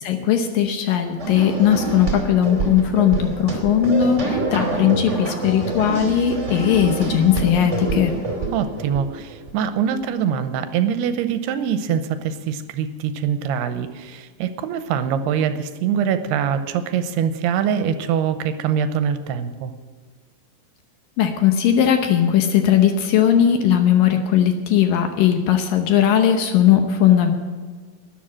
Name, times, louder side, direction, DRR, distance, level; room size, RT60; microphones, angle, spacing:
voice 1, 0.0-8.1 21.2-27.3, left 9 dB, 70° left, 6 dB, 2.3 m, -18 dB
sound 1, 1.2-9.5, right 3 dB, 20° right, 2.1 m, -26 dB
voice 2, 8.5-19.7, right 8 dB, 90° right, 10 dB, 2.7 m, -23 dB
12.5 x 10.5 x 7.5 m, 1.5 s
omnidirectional pair, 4.7 m